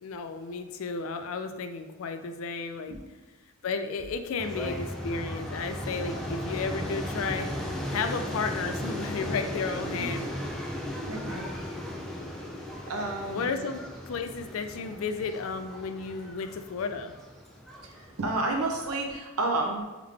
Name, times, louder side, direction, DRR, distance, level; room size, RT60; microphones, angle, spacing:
voice 1, 0.0-3.0 3.6-10.3 13.3-17.1, left 4 dB, 65° left, 8 dB, 0.4 m, -33 dB
sound 1, 4.4-19.0, equal, ahead, 0.4 m, -36 dB
voice 2, 11.1-11.5 12.9-13.6 18.2-19.8, right 2 dB, 85° right, 3 dB, 0.7 m, -30 dB
3.6 x 3.5 x 3.3 m, 1.2 s
head